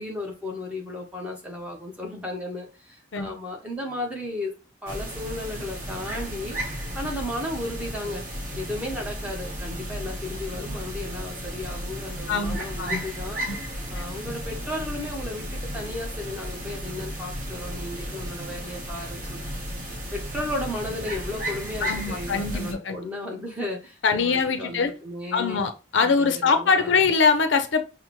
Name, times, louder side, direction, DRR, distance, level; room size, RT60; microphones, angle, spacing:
voice 1, 0.0-4.5 4.8-6.6 6.9-8.2 8.5-13.4 13.9-19.4 20.1-25.6 26.0-27.1, left 1 dB, 5° right, 0.8 m, -34 dB
sound 1, 4.9-22.7, equal, 45° right, 0.9 m, -34 dB
voice 2, 12.3-13.1 13.5-13.6 14.0-14.1 21.8-23.0 24.0-24.9 25.3-27.8, left 5 dB, 80° left, 0.5 m, -23 dB
5.6 x 2.1 x 3.0 m
head